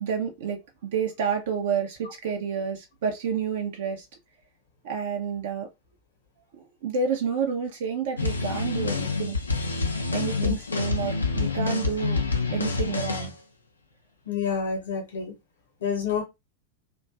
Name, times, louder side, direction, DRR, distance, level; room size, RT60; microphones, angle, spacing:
voice 1, 0.0-4.1 4.8-5.7 6.5-9.4 10.1-12.2 12.5-13.3, right 6 dB, 55° right, 0.4 m, -29 dB
sound 1, 8.2-13.3, left 4 dB, 75° left, 0.4 m, -27 dB
voice 2, 14.3-15.3 15.8-16.2, left 6 dB, 60° left, 0.8 m, -28 dB
2.5 x 2.2 x 2.4 m
figure-of-eight pair, 90°, 0 cm